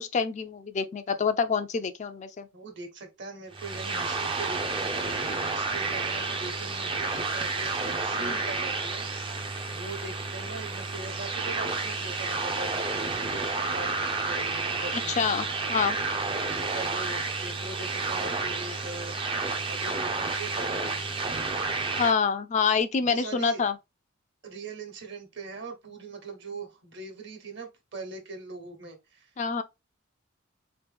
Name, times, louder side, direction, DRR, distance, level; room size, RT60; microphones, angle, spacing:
voice 1, 0.0-2.5 8.2-8.3 15.2-16.0 22.0-23.7 29.4-29.6, left 5 dB, 35° left, 0.3 m, -27 dB
voice 2, 2.5-15.3 16.5-19.4 19.7-21.0 23.0-23.6 24.4-29.3, right 3 dB, 60° right, 1.2 m, -41 dB
sound 1, 3.5-22.1, right 3 dB, 25° right, 0.4 m, -30 dB
4.0 x 3.0 x 3.3 m
head